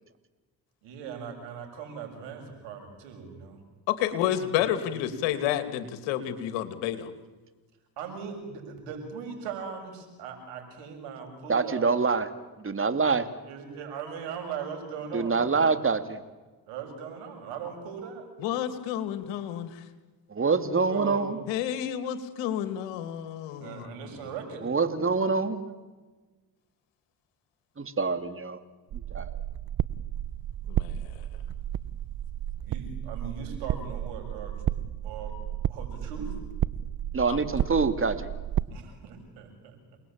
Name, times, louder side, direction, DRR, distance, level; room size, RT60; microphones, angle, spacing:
voice 1, 0.8-3.6 4.8-5.0 8.0-11.9 13.4-15.6 16.7-18.3 20.9-21.3 23.6-24.6 32.6-35.4 35.7-36.3 38.7-40.0, right 6 dB, 85° right, 4 dB, 6.9 m, -39 dB
voice 2, 3.9-7.1 18.4-19.8 21.5-23.9 30.7-30.9 37.3-37.4, left 11 dB, 80° left, 10 dB, 2.7 m, -30 dB
voice 3, 11.5-12.3 12.6-13.3 15.1-16.2 20.3-21.4 24.6-25.7 27.8-28.6 28.9-29.4 37.1-38.3, right 4 dB, 30° right, 9 dB, 2.9 m, -26 dB
sound 1, 28.9-38.7, right 11 dB, 55° right, 0.9 m, -32 dB
29.0 x 20.0 x 8.9 m, 1.3 s
supercardioid pair, 60°, 43 cm